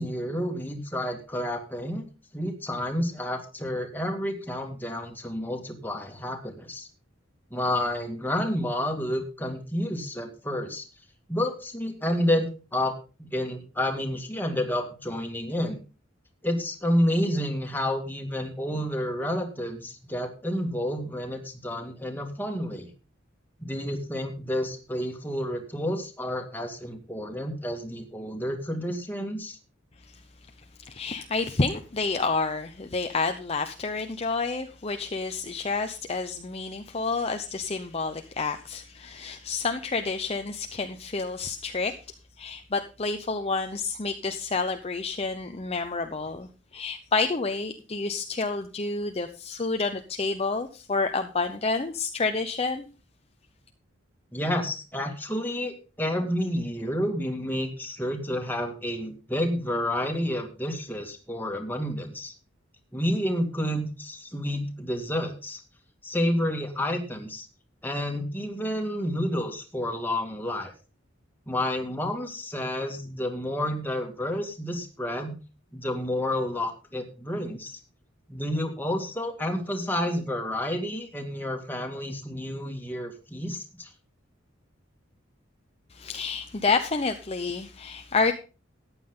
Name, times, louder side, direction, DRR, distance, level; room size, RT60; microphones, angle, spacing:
voice 1, 0.0-2.1 2.3-6.9 7.5-10.8 11.3-15.8 16.4-22.9 23.6-29.6 54.3-62.3 62.9-65.6 66.0-67.5 67.8-70.7 71.5-75.4 75.7-77.8 78.3-83.9, left 1 dB, 10° left, 2 dB, 2.2 m, -30 dB
voice 2, 30.8-42.0 42.4-52.9 85.9-88.3, left 4 dB, 30° left, 6 dB, 0.8 m, -29 dB
14.0 x 9.8 x 3.8 m, 0.33 s
head